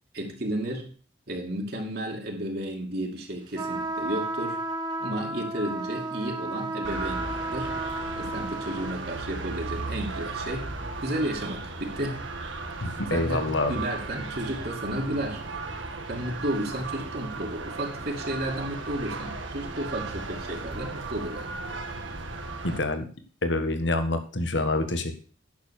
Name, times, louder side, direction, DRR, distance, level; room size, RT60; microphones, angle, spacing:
voice 1, 0.1-0.9 1.3-4.6 5.0-7.8 8.1-10.7 11.0-12.2 13.1-15.4 16.1-21.5, right 1 dB, 50° right, 0 dB, 2.6 m, -32 dB
sound 1, 3.5-9.0, right 2 dB, 20° right, 1.6 m, -33 dB
sound 2, 6.8-22.8, right 3 dB, 80° right, 1.9 m, -36 dB
voice 2, 12.8-13.8 22.6-23.1 23.4-25.2, left 2 dB, 70° left, 8 dB, 1.7 m, -27 dB
10.5 x 7.0 x 6.5 m, 0.40 s
head